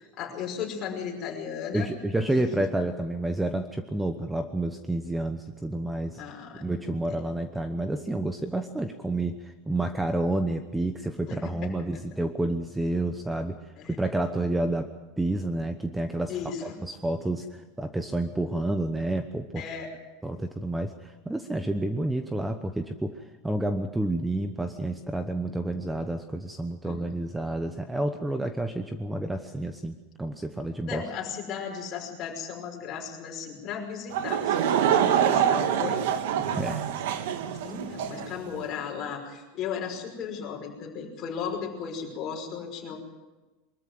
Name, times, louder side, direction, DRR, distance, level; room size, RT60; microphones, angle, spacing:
voice 1, 0.0-1.9 2.2-2.7 6.2-7.0 11.3-11.7 13.8-14.0 16.3-16.8 19.5-19.9 26.8-27.2 30.9-36.0 37.6-43.0, left 7 dB, 35° left, 1 dB, 5.6 m, -36 dB
voice 2, 1.7-6.2 6.6-13.6 13.9-14.9 15.2-16.4 16.6-19.6 20.2-31.0 36.6-37.0, right 2 dB, 5° right, 8 dB, 0.9 m, -29 dB
Laughter / Crowd, 34.1-38.3, right 9 dB, 80° right, 1.7 m, -25 dB
23.5 x 14.0 x 9.5 m, 1.2 s
supercardioid pair, 155°, 0 cm